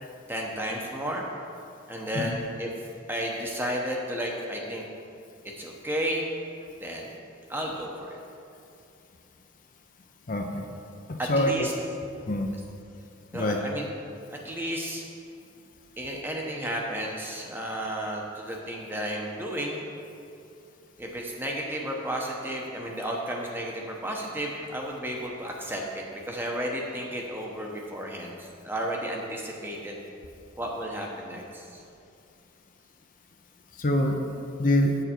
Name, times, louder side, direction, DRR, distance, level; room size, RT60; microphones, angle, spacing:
voice 1, 0.3-1.2 1.9-2.7 3.1-4.9 5.6-6.3 6.8-7.1 7.5-8.2 11.2-11.7 13.3-13.9 14.3-15.0 16.0-19.8 21.0-30.0 30.6-31.8, equal, 10° right, -1 dB, 0.8 m, -33 dB
voice 2, 10.3-10.6 11.1-11.7 12.3-12.5 13.3-13.6 33.7-35.0, left 1 dB, 45° left, 3 dB, 0.6 m, -26 dB
7.8 x 6.8 x 4.4 m, 2.5 s
head